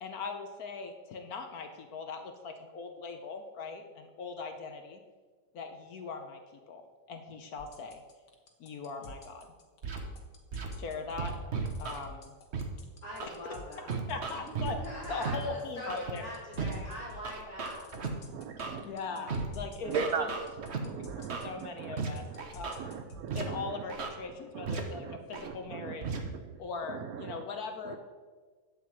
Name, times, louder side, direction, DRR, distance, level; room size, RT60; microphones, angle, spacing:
voice 1, 0.0-5.0 5.5-6.8 7.1-8.0 8.6-9.5 10.8-11.3 11.8-12.4 13.2-13.3 14.1-14.8 15.1-16.2 18.8-20.3 20.8-20.9 21.4-22.9 23.3-26.2 26.6-28.0, left 4 dB, 65° left, 5 dB, 1.2 m, -40 dB
sound 1, 7.6-23.3, left 2 dB, 80° left, 2.0 m, -50 dB
Scratching (performance technique), 9.8-10.0 10.5-10.7 11.2-12.0 12.5-12.6 13.2-13.3 13.9-14.7 15.2-15.4 15.9-16.1 16.6-16.7 17.2-18.1 18.6-18.7 19.3-19.5 19.9-20.8 21.3-21.5 22.0-22.1 22.4-22.8 23.3-23.4 23.9-24.1 24.7-24.8 25.3-25.5 26.0-26.2, right 5 dB, 45° right, 1.2 m, -34 dB
voice 2, 13.0-13.9 14.3-17.8, equal, 45° left, -5 dB, 2.8 m, -43 dB
voice 3, 18.3-18.9 19.9-20.3 20.9-21.5 21.8-22.0 22.3-22.4 22.8-23.8 24.5-24.8 25.0-25.2 25.4-26.6 26.9-27.4 27.9-28.0, right 6 dB, 70° right, 7 dB, 1.0 m, -38 dB
10.0 x 7.7 x 4.7 m, 1.4 s
omnidirectional pair, 1.8 m